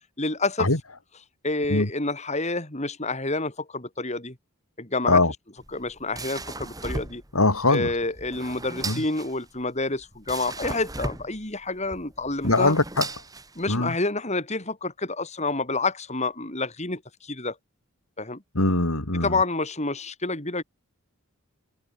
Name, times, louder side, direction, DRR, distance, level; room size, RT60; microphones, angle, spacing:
voice 1, 0.2-0.7 1.4-4.4 4.8-5.2 5.7-7.2 7.7-12.7 13.6-17.6 18.2-18.4 19.1-20.6, left 3 dB, 30° left, 4.2 m, -28 dB
sound 1, 5.6-13.9, right 2 dB, 15° right, 8.0 m, -37 dB
voice 2, 7.3-7.9 8.8-9.0 12.4-13.1 13.7-13.9 18.6-19.3, left 2 dB, 85° left, 3.8 m, -21 dB
head